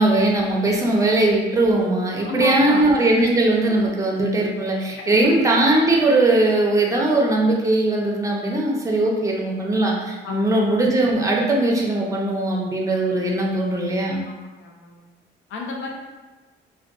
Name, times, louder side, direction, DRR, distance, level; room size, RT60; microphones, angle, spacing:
voice 1, 0.0-14.2, right 2 dB, 15° right, -1 dB, 0.5 m, -20 dB
voice 2, 2.2-2.8 5.0-5.3 10.2-10.5 14.6-15.1 15.5-15.9, left 2 dB, 80° left, 0 dB, 0.5 m, -29 dB
2.5 x 2.2 x 2.2 m, 1.2 s
cardioid pair, 90°, 20 cm